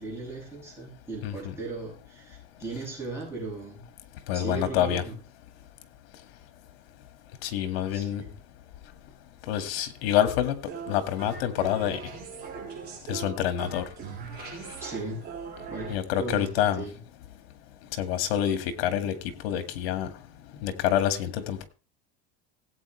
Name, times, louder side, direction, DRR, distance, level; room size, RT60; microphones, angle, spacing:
voice 1, 0.0-3.8 4.3-5.2 7.9-8.3 14.8-15.2 15.7-17.0, right 3 dB, 10° right, -4 dB, 7.4 m, -37 dB
voice 2, 1.2-1.5 4.3-5.0 7.4-8.2 9.5-10.6 10.9-12.0 13.1-13.9 14.4-14.5 15.9-16.8 18.0-19.1 19.4-20.1 20.6-21.7, left 11 dB, 80° left, 10 dB, 2.1 m, -27 dB
sound 1, 10.6-15.9, right 6 dB, 35° right, 5.4 m, -40 dB
17.5 x 8.7 x 3.3 m, 0.35 s
cardioid pair, 165°, 30 cm